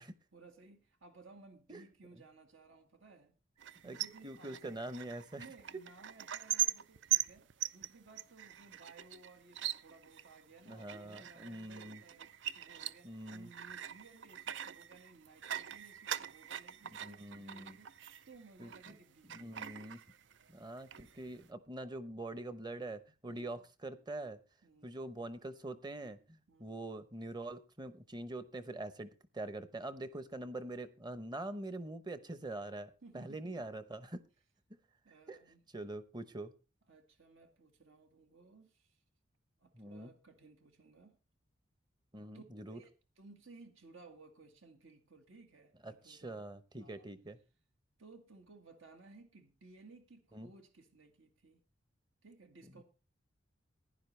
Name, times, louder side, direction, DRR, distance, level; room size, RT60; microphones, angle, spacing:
voice 1, 0.3-3.3 3.8-4.8 5.4-19.7 23.3-23.6 24.6-25.0 26.5-26.8 33.0-33.7 35.0-35.6 36.9-39.0 39.6-41.2 42.3-46.4 46.8-47.1 48.0-51.6 52.2-52.8, right 3 dB, 80° right, 4 dB, 1.9 m, -59 dB
sound 1, 3.6-19.0 19.3-20.5 20.8-21.5, right 11 dB, 60° right, 0.5 m, -41 dB
voice 2, 4.2-5.4 10.7-12.0 13.0-13.5 17.0-17.8 18.6-18.7 19.3-20.0 20.5-24.4 24.8-34.2 35.3-35.4 35.7-36.5 39.7-40.1 42.1-42.8 45.8-47.4 50.3-50.5, right 2 dB, 20° right, 12 dB, 0.9 m, -44 dB
15.5 x 10.5 x 3.3 m, 0.32 s
head